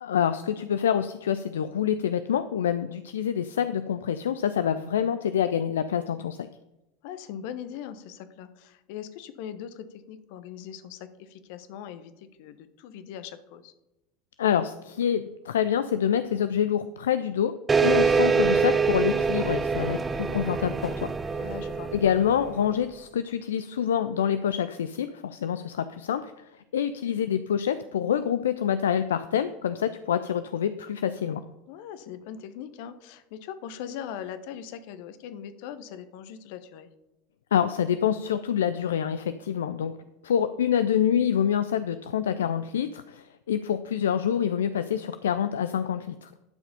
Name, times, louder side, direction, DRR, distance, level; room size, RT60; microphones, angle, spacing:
voice 1, 0.0-6.5 14.4-17.5 17.8-21.1 21.9-31.4 37.5-39.9 40.2-46.3, left 9 dB, 75° left, 11 dB, 0.3 m, -26 dB
voice 2, 7.0-13.7 21.4-21.9 31.7-36.9, left 9 dB, 60° left, 12 dB, 0.8 m, -40 dB
sound 1, 17.7-22.8, right 5 dB, 20° right, 0.4 m, -25 dB
11.5 x 4.8 x 5.5 m, 0.96 s
hypercardioid pair, 80°, 0 cm